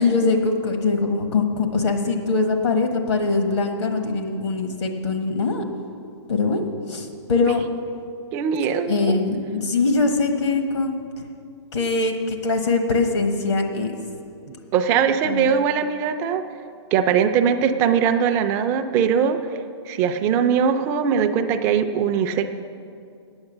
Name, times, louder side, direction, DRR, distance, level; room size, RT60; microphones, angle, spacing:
voice 1, 0.0-5.6 6.3-7.6 8.9-11.0 11.7-13.9 15.2-15.5, left 3 dB, 80° left, 5 dB, 1.4 m, -22 dB
voice 2, 8.3-9.2 14.5-16.4 16.9-19.4 19.9-22.5, right 7 dB, 15° right, 8 dB, 0.3 m, -21 dB
8.8 x 8.6 x 7.2 m, 2.5 s
hypercardioid pair, 165°, 14 cm